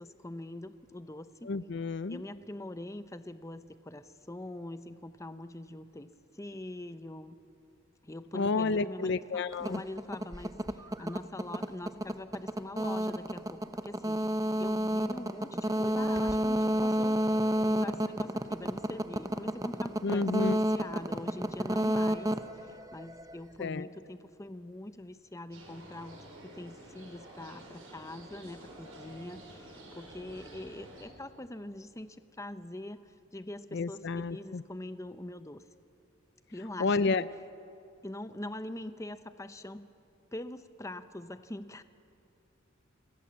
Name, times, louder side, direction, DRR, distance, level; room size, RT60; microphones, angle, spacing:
voice 1, 0.0-1.5 2.1-7.4 8.0-17.2 17.6-35.6 36.5-37.3 38.0-39.9 40.3-41.8, left 1 dB, 15° left, 11 dB, 0.7 m, -43 dB
voice 2, 1.5-2.2 8.3-9.8 20.0-20.6 23.6-23.9 33.7-34.6 36.8-37.2, left 4 dB, 60° left, 15 dB, 0.5 m, -30 dB
sound 1, 9.5-23.4, equal, 15° right, 0.8 m, -30 dB
sound 2, 25.5-31.0, right 1 dB, 85° right, 6.1 m, -50 dB
28.5 x 18.5 x 7.5 m, 2.7 s
head